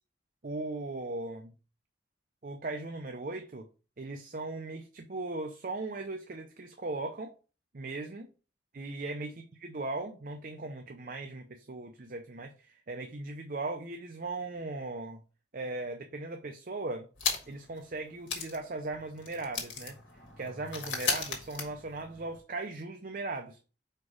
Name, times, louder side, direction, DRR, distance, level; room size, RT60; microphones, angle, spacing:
voice 1, 0.4-1.5 2.4-3.7 4.0-7.3 7.7-8.3 8.7-15.2 15.5-17.1 17.5-20.0 20.4-23.6, right 2 dB, 45° right, 4 dB, 0.6 m, -38 dB
sound 1, 17.2-17.7 18.0-18.1 18.3-22.4, left 5 dB, 85° left, 1.6 m, -36 dB
4.8 x 4.5 x 4.8 m, 0.35 s
head